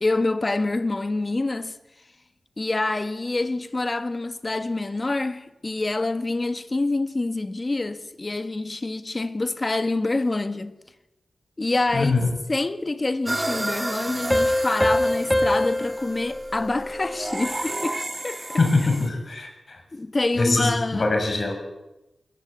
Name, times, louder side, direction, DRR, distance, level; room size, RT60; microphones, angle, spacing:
voice 1, 0.0-1.8 2.6-10.7 11.6-12.1 12.5-18.0 18.2-18.6 19.9-21.1, left 2 dB, 35° left, 1.7 m, -26 dB
voice 2, 11.9-12.3 18.6-19.8 20.4-21.5, left 3 dB, 55° left, 6.9 m, -23 dB
sound 1, 13.3-19.1, right 1 dB, 20° right, 1.7 m, -32 dB
sound 2, 14.3-17.6, left 1 dB, 10° left, 2.1 m, -24 dB
22.0 x 20.5 x 8.2 m
wide cardioid pair, 75°, 0 cm